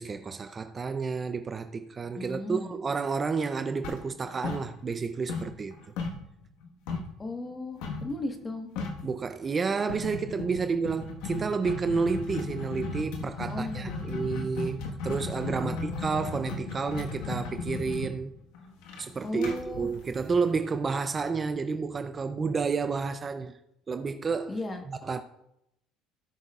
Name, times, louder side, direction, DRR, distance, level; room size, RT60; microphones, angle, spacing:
voice 1, 0.0-5.9 9.0-18.3 19.0-23.6 23.9-24.6 24.9-25.2, right 5 dB, 30° right, 0.6 m, -30 dB
voice 2, 2.2-2.8 7.2-8.7 13.5-14.4 15.6-16.3 19.2-19.9 24.5-24.8, left 2 dB, 25° left, 1.5 m, -36 dB
sound 1, 3.8-5.0 5.3-7.2 7.8-8.1 8.4-8.5 8.7-9.1 9.9-20.7, left 4 dB, 80° left, 1.5 m, -35 dB
18.0 x 6.3 x 2.5 m
supercardioid pair, 95°, 0 cm